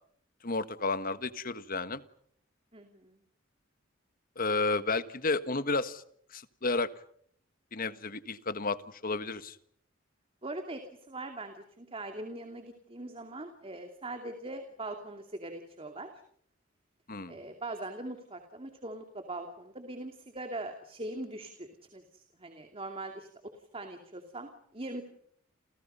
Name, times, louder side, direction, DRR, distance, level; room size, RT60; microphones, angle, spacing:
voice 1, 0.4-2.0 4.4-6.0 6.3-6.9 7.7-9.6 17.1-17.4, left 3 dB, 45° left, 12 dB, 1.5 m, -32 dB
voice 2, 2.7-3.2 10.4-10.8 11.1-16.1 17.3-23.3 23.7-25.0, right 2 dB, 30° right, 5 dB, 2.6 m, -41 dB
30.0 x 29.0 x 5.6 m, 0.65 s
head